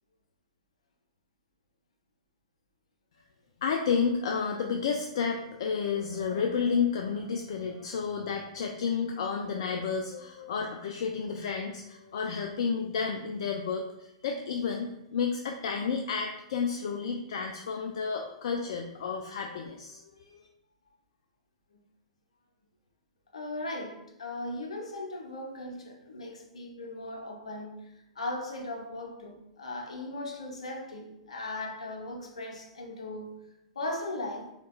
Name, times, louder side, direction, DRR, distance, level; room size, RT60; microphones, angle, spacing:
voice 1, 3.6-20.5, left 6 dB, 60° left, 2 dB, 0.4 m, -31 dB
voice 2, 23.3-33.3 33.7-34.5, left 2 dB, 75° left, 0 dB, 0.8 m, -38 dB
3.8 x 3.6 x 2.3 m, 0.88 s
figure-of-eight pair, 110°, 3 cm